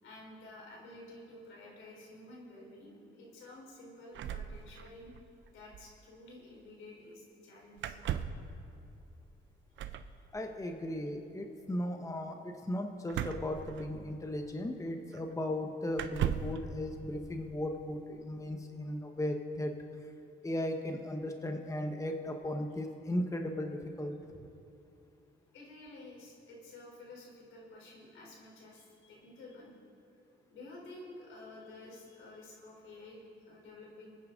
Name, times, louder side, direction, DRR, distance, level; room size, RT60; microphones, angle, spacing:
voice 1, 0.0-5.1 5.5-8.0 9.8-10.1 25.5-29.7 30.5-34.2, left 2 dB, 80° left, -2 dB, 3.9 m, -51 dB
sound 1, 4.1-5.2 5.5-5.6 5.7-5.9 7.8-8.5 9.8-10.1 13.1-14.3 15.1-15.2 15.9-16.6, right 9 dB, 70° right, 0.7 m, -37 dB
voice 2, 10.3-19.7 20.4-24.4, left 1 dB, 15° left, 4 dB, 1.1 m, -36 dB
25.0 x 9.7 x 3.9 m, 2.8 s
cardioid pair, 90°, 20 cm